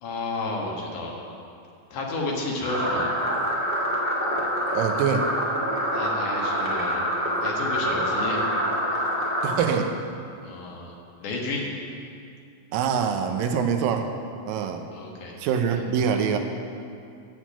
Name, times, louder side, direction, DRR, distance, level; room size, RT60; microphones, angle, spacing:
voice 1, 0.0-1.2 1.9-3.1 5.9-7.0 7.4-8.4 10.4-10.9 11.2-11.7 14.9-15.4 15.7-15.8, left 2 dB, 65° left, -1 dB, 2.8 m, -31 dB
sound 1, 2.6-9.5, equal, 5° right, 1.5 m, -26 dB
voice 2, 4.7-5.3 9.4-9.9 12.7-14.1 14.4-14.8 15.4-16.4, right 7 dB, 85° right, 6 dB, 2.5 m, -24 dB
13.0 x 4.7 x 8.7 m, 2.5 s
omnidirectional pair, 3.9 m